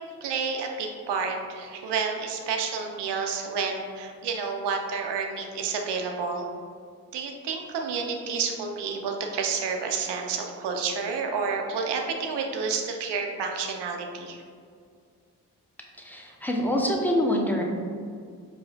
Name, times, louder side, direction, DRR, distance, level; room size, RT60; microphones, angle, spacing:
voice 1, 0.2-6.5 7.1-14.4, right 5 dB, 85° right, 2 dB, 0.6 m, -30 dB
voice 2, 16.0-17.6, left 1 dB, 5° left, 0 dB, 0.7 m, -25 dB
4.7 x 2.5 x 3.3 m, 2.2 s
supercardioid pair, 40°, 40 cm